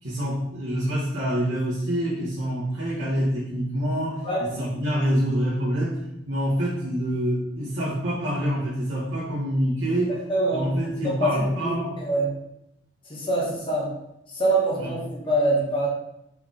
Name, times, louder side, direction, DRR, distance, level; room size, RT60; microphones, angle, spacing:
voice 1, 0.0-6.0 6.3-10.1 10.5-12.0 14.8-14.9, equal, 80° right, -10 dB, 2.0 m, -26 dB
voice 2, 10.3-10.7 11.0-11.8 12.0-12.3 13.1-13.9 14.3-15.9, right 1 dB, 30° left, -5 dB, 2.1 m, -24 dB
5.7 x 4.9 x 3.8 m, 0.82 s
head